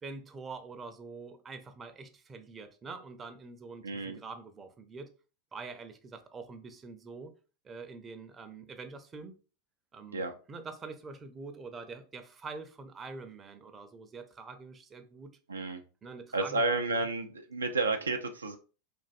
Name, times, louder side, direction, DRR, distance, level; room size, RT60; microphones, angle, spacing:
voice 1, 0.0-5.1 5.5-7.3 7.6-9.4 9.9-15.3 16.0-16.6, right 4 dB, 25° right, 0.5 m, -45 dB
voice 2, 3.8-4.2 10.1-10.3 15.5-15.8 16.3-18.6, right 3 dB, 80° right, 0.3 m, -31 dB
3.3 x 2.5 x 2.4 m
figure-of-eight pair, 85°, 0 cm